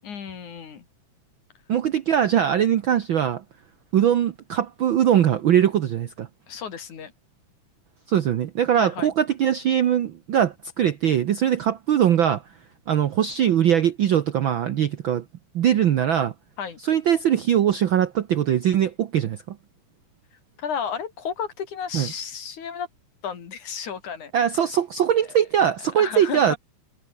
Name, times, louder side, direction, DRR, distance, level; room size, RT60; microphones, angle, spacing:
voice 1, 0.0-0.9 6.5-7.1 8.7-9.1 16.6-16.8 20.6-22.9 23.2-24.3 26.0-26.6, left 7 dB, 80° left, 4.4 m, -32 dB
voice 2, 1.7-3.4 3.9-6.3 8.1-12.4 12.9-15.2 15.5-16.3 16.8-19.6 21.9-22.1 24.3-26.5, right 10 dB, 70° right, 1.2 m, -21 dB
omnidirectional pair, 3.4 m